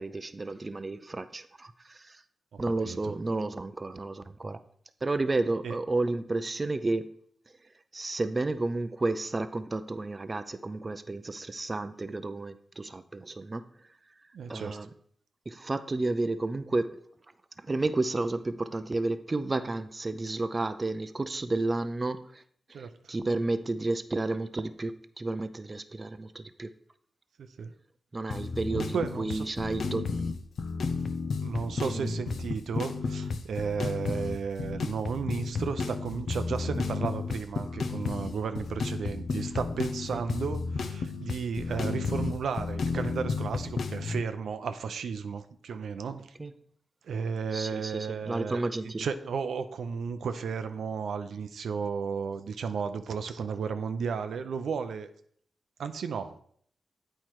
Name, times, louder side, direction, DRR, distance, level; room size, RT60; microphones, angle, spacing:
voice 1, 0.0-2.2 2.6-4.6 5.0-7.1 7.9-13.7 14.5-14.9 15.5-17.0 17.6-22.4 22.7-26.7 28.1-30.1 31.8-32.2 40.1-40.2 46.4-46.5 47.5-49.1, right 2 dB, 30° right, 11 dB, 0.5 m, -31 dB
voice 2, 2.5-3.0 5.6-5.8 14.3-14.8 22.7-22.9 27.4-27.7 28.7-29.4 31.4-46.3 47.1-48.6 49.0-55.1 55.8-56.4, right 6 dB, 85° right, 9 dB, 0.5 m, -34 dB
sound 1, 28.3-44.2, left 4 dB, 75° left, 0.6 m, -33 dB
8.5 x 4.4 x 4.5 m, 0.62 s
cardioid pair, 70°, 0 cm